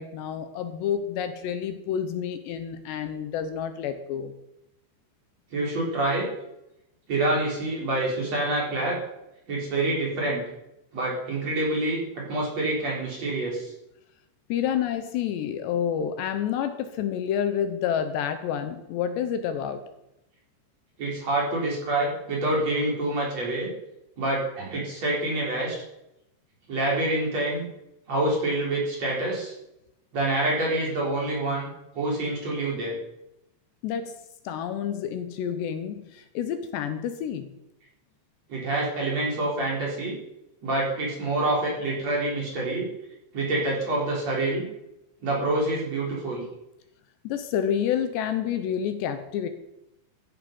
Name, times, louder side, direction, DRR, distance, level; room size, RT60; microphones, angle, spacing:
voice 1, 0.0-4.3 14.5-19.8 33.8-34.2 34.4-37.5 47.2-49.5, left 8 dB, 75° left, 9 dB, 3.0 m, -29 dB
voice 2, 5.5-6.3 7.1-9.0 9.5-10.4 10.9-13.7 21.0-23.7 24.2-25.7 26.7-27.6 28.1-29.5 30.1-31.7 31.9-32.9 38.5-40.2 40.6-42.9 43.3-44.7 45.2-46.5, right 2 dB, 40° right, -3 dB, 4.9 m, -27 dB
14.5 x 12.0 x 5.3 m, 0.86 s
omnidirectional pair, 5.2 m